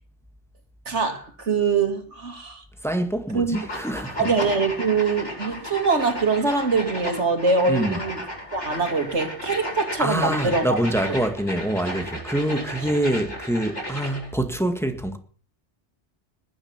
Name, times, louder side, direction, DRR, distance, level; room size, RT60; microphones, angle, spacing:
voice 1, 0.9-2.6 3.3-3.6 4.2-8.2 8.5-11.1, right 4 dB, 90° right, 2.9 m, -23 dB
voice 2, 2.8-4.3 7.7-8.0 10.0-15.2, right 1 dB, ahead, 1.8 m, -25 dB
sound 1, 3.5-14.3, equal, 85° left, 6.9 m, -34 dB
19.0 x 11.0 x 6.1 m
omnidirectional pair, 1.2 m